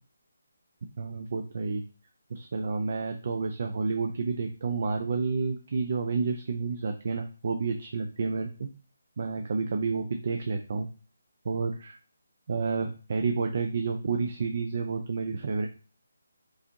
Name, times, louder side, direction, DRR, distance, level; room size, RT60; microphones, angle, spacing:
voice 1, 1.0-1.8 2.3-8.7 9.2-10.9 11.4-12.0 12.5-15.7, right 4 dB, 50° right, 5 dB, 0.5 m, -30 dB
4.8 x 2.6 x 2.7 m, 0.36 s
figure-of-eight pair, 150°, 0 cm